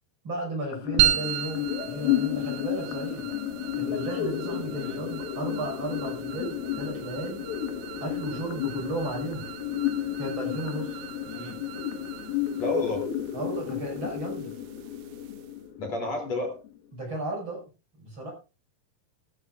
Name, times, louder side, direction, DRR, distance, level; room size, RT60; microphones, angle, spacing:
voice 1, 0.2-3.3 3.7-7.5 8.0-9.5 10.2-11.0 13.3-14.5 16.9-17.6 18.0-18.3, right 1 dB, 35° right, 2 dB, 6.1 m, -34 dB
sound 1, 0.7-16.7, left 11 dB, 80° left, 3.3 m, -32 dB
sound 2, 1.0-15.7, right 12 dB, 75° right, 2.4 m, -35 dB
voice 2, 4.8-5.1 11.3-11.6 12.6-13.1 15.8-16.6, left 2 dB, 50° left, 2 dB, 4.2 m, -31 dB
20.5 x 13.0 x 2.5 m, 0.31 s
omnidirectional pair, 4.1 m